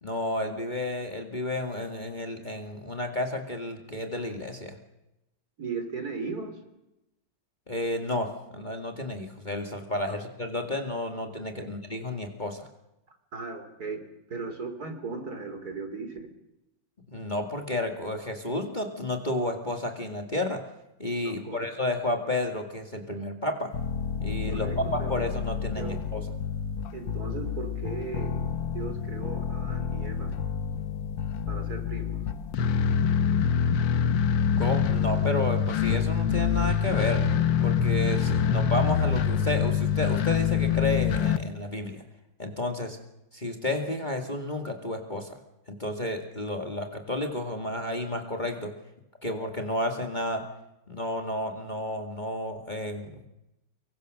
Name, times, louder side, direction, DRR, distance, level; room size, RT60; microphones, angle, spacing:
voice 1, 0.0-4.8 7.7-12.7 17.1-20.6 21.0-23.7 24.2-26.2 34.6-37.2 37.6-42.0 42.4-43.0 43.3-45.4 45.7-48.7 49.2-50.4 50.9-53.2, left 1 dB, 25° left, 4 dB, 2.1 m, -31 dB
voice 2, 5.6-6.6 10.1-10.2 13.1-16.3 21.2-21.6 24.5-25.2 25.8-26.0 26.9-28.4 28.7-30.3 31.5-32.3, right 4 dB, 50° right, 7 dB, 3.7 m, -37 dB
sound 1, 23.7-41.4, left 7 dB, 75° left, 1.8 m, -26 dB
24.5 x 23.0 x 6.5 m, 0.91 s
omnidirectional pair, 2.1 m